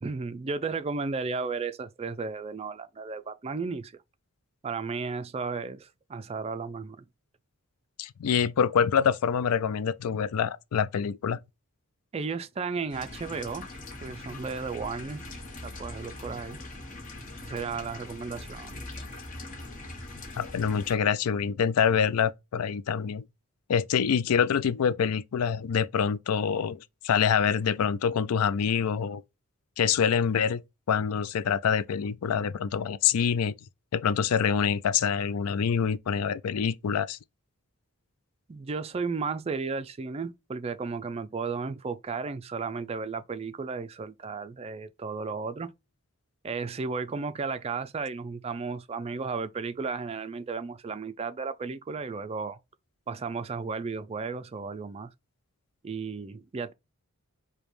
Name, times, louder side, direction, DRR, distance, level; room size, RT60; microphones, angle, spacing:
voice 1, 0.0-3.9 4.6-7.1 12.1-13.6 14.0-15.2 15.6-16.6 17.4-18.9 38.5-45.7 46.4-52.6 53.1-55.1 55.8-56.7, right 4 dB, 30° right, 0.3 m, -34 dB
voice 2, 8.0-11.4 20.4-23.2 23.7-29.2 29.8-30.6 30.9-33.5 33.9-37.2, left 7 dB, 85° left, 0.4 m, -26 dB
sound 1, 12.9-21.0, left 2 dB, 35° left, 1.1 m, -42 dB
5.0 x 2.2 x 3.0 m
head